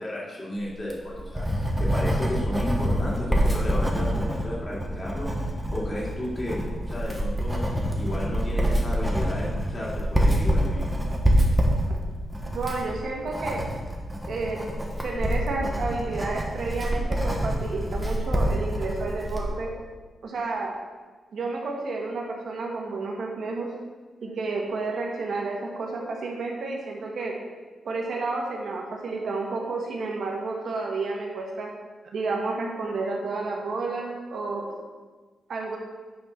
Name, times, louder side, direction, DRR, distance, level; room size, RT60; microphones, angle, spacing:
voice 1, 0.0-5.3 5.7-10.9, left 1 dB, 30° left, -6 dB, 2.8 m, -33 dB
Writing, 0.7-19.5, equal, 5° right, 1.3 m, -26 dB
voice 2, 12.5-13.6 14.3-14.6 15.0-19.7 20.2-20.7 21.3-23.7 24.2-27.4 27.8-31.7 32.1-34.7 35.5-35.8, right 3 dB, 65° right, 0 dB, 1.5 m, -31 dB
9.2 x 4.5 x 5.6 m, 1.4 s
wide cardioid pair, 125°, 0 cm